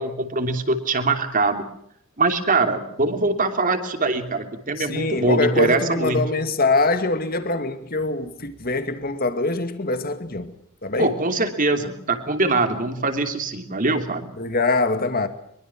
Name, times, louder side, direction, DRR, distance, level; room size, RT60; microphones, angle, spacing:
voice 1, 0.0-1.6 2.2-6.3 11.0-14.3, right 3 dB, 40° right, 3.0 m, -23 dB
voice 2, 4.8-10.5 10.8-11.1 14.4-15.3, left 3 dB, 45° left, 2.3 m, -23 dB
24.5 x 23.0 x 6.1 m
head